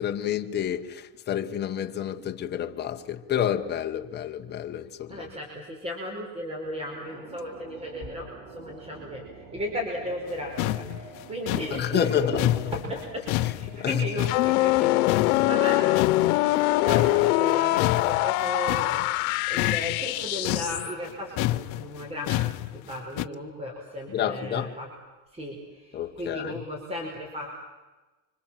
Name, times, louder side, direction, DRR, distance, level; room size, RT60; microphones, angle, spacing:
voice 1, 0.0-5.3 11.7-12.5 13.4-14.3 15.3-15.5 17.1-17.2 24.1-24.8 25.9-26.6, left 9 dB, 25° left, 1.6 m, -29 dB
voice 2, 5.1-9.2 9.5-13.3 13.6-15.2 15.4-15.8 16.8-19.1 19.5-22.3 22.7-24.9 25.3-25.6 25.9-27.6, left 1 dB, 15° right, 4.9 m, -35 dB
sound 1, 6.6-19.2, right 3 dB, 80° right, 7.0 m, -48 dB
sound 2, 10.3-10.4 10.6-14.8 15.1-16.6 16.9-23.3, left 17 dB, 55° left, 1.1 m, -30 dB
sound 3, 14.2-20.9, left 18 dB, 90° left, 1.1 m, -23 dB
30.0 x 25.5 x 7.7 m
cardioid pair, 160°, 41 cm